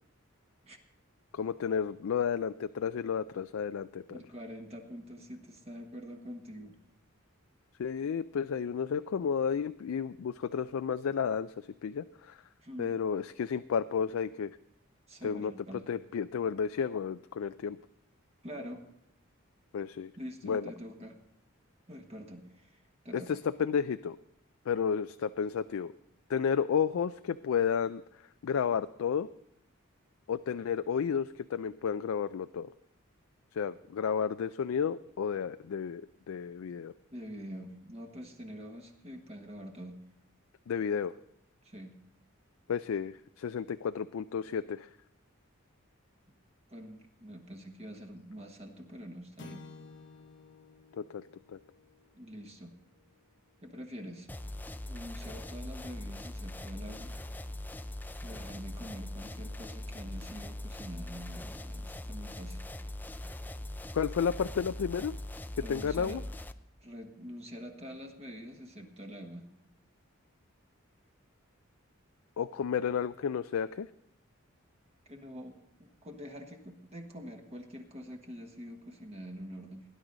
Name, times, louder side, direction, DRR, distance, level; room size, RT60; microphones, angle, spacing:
voice 1, 1.3-4.2 7.8-12.4 12.8-14.5 15.2-15.5 15.9-17.8 19.7-20.1 20.4-20.7 23.1-24.2 24.7-25.9 26.3-28.0 28.4-29.3 30.3-32.7 33.5-36.0 36.3-36.9 40.7-41.1 42.7-44.9 50.9-51.2 51.5-51.6 63.9-65.1 65.7-66.2 72.4-73.9, left 7 dB, 80° left, 12 dB, 0.4 m, -32 dB
voice 2, 4.1-6.8 12.6-12.9 15.1-15.9 18.4-18.8 20.1-21.2 21.9-23.4 37.1-40.0 41.6-41.9 46.7-49.6 52.1-52.8 53.6-54.3 54.9-57.1 58.2-62.6 65.6-66.2 66.8-69.5 75.1-79.8, equal, 30° right, 3 dB, 1.4 m, -45 dB
sound 1, 49.4-53.9, left 3 dB, 65° left, 1.1 m, -54 dB
sound 2, 54.3-66.5, left 1 dB, 10° left, 0.4 m, -41 dB
19.0 x 10.0 x 3.9 m, 0.80 s
head